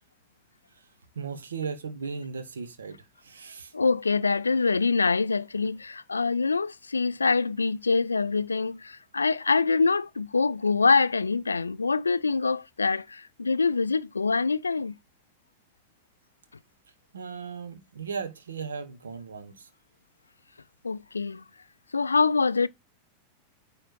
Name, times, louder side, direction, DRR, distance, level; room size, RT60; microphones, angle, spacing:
voice 1, 1.1-3.7 17.1-19.7, right 5 dB, 70° right, 1.1 m, -37 dB
voice 2, 3.7-8.8 9.1-13.0 13.4-14.9 20.8-21.4 21.9-22.7, left 4 dB, 75° left, 0.3 m, -24 dB
9.0 x 3.5 x 4.5 m
figure-of-eight pair, 90°, 0 cm